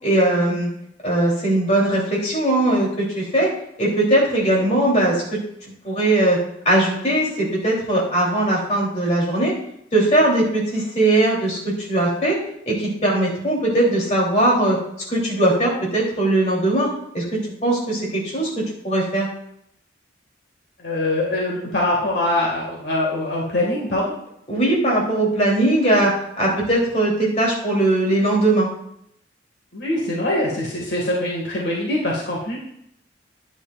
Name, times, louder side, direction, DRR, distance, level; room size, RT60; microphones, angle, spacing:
voice 1, 0.0-0.7 1.0-3.5 3.8-5.4 5.8-6.4 6.6-9.5 9.9-12.4 12.7-14.8 15.1-16.9 17.1-19.3 24.5-26.1 26.4-28.7, right 1 dB, 35° left, -3 dB, 3.3 m, -19 dB
voice 2, 20.8-24.2 29.7-32.6, left 1 dB, 70° left, -2 dB, 2.0 m, -23 dB
10.0 x 10.0 x 2.5 m, 0.73 s
head